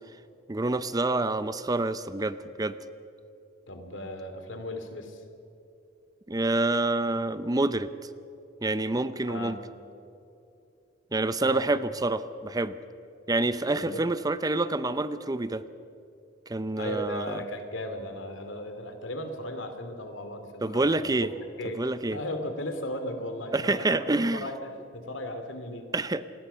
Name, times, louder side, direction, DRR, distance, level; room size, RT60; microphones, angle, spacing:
voice 1, 0.5-2.8 6.3-7.9 8.6-9.6 11.1-12.8 13.3-15.6 16.5-17.4 20.6-21.3 21.8-22.2 23.5-24.4 25.9-26.2, right 2 dB, 20° right, 13 dB, 0.6 m, -27 dB
voice 2, 3.7-5.2 9.2-9.6 11.4-11.7 13.8-14.0 16.8-21.3 21.6-21.8 22.1-25.9, left 1 dB, 85° left, 7 dB, 2.8 m, -36 dB
27.5 x 20.0 x 5.7 m, 2.8 s
head